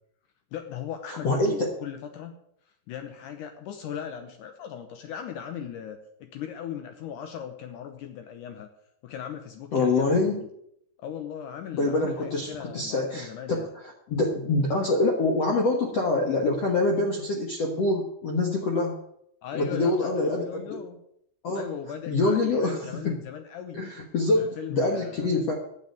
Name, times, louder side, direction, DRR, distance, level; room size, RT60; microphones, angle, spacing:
voice 1, 0.5-2.4 2.9-8.7 9.0-10.5 11.0-13.6 19.4-21.0 21.5-23.8 24.4-25.5, left 8 dB, 90° left, 7 dB, 1.7 m, -38 dB
voice 2, 1.1-1.7 9.7-10.4 11.7-19.0 19.5-20.7 21.4-21.7 22.1-23.2 23.7-25.5, left 2 dB, 60° left, 1 dB, 1.6 m, -25 dB
10.0 x 7.4 x 9.1 m, 0.71 s
omnidirectional pair, 5.0 m